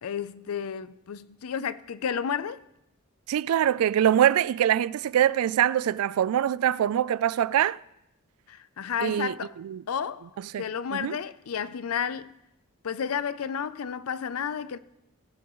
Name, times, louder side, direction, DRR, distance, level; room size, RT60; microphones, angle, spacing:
voice 1, 0.0-2.6 8.5-9.6 9.9-12.3 12.8-14.8, left 7 dB, 90° left, 0.5 m, -32 dB
voice 2, 3.3-7.8 9.0-9.8 10.5-10.6 10.9-11.2, right 10 dB, 85° right, 0.3 m, -24 dB
18.0 x 8.5 x 3.1 m
head